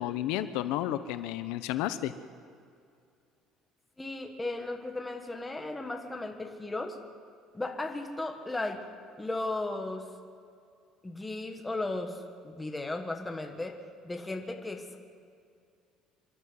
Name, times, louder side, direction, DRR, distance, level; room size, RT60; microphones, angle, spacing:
voice 1, 0.0-2.1, left 13 dB, 85° left, 11 dB, 0.9 m, -32 dB
voice 2, 4.0-7.0 7.5-8.9 9.2-10.0 11.0-13.8 14.0-15.0, left 2 dB, 10° left, 3 dB, 1.4 m, -35 dB
28.0 x 12.0 x 8.0 m, 2.4 s
cardioid pair, 175°, 0 cm